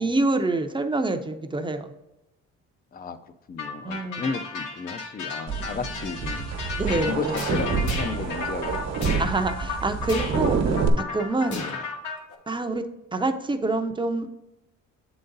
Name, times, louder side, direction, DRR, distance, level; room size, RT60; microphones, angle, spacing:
voice 1, 0.0-1.9 3.8-4.3 6.8-7.4 9.2-10.6 11.0-11.6 12.5-12.8 13.1-14.4, right 2 dB, 15° right, 7 dB, 0.6 m, -26 dB
voice 2, 2.9-6.5 6.9-9.2 10.0-10.3 11.5-11.8, left 5 dB, 30° left, 11 dB, 0.5 m, -34 dB
sound 1, 3.6-12.1, left 5 dB, 90° left, 1.3 m, -35 dB
sound 2, 5.5-10.9, right 5 dB, 60° right, 1.1 m, -27 dB
sound 3, 6.9-7.1 7.3-8.2 9.0-9.3 10.1-10.4 11.5-11.9 12.3-12.4, left 4 dB, 70° left, 1.2 m, -35 dB
7.6 x 4.0 x 3.9 m, 0.95 s
cardioid pair, 90°, 30 cm